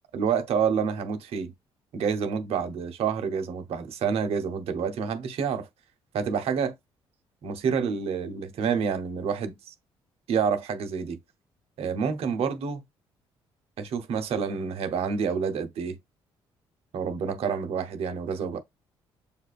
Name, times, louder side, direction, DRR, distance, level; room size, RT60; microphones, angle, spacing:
voice 1, 0.1-1.5 1.9-5.7 6.1-6.7 7.4-9.7 10.3-11.2 11.8-12.8 13.8-16.0 16.9-18.6, right 6 dB, 70° right, 0.8 m, -28 dB
7.1 x 2.4 x 2.4 m
supercardioid pair, 70°, 11 cm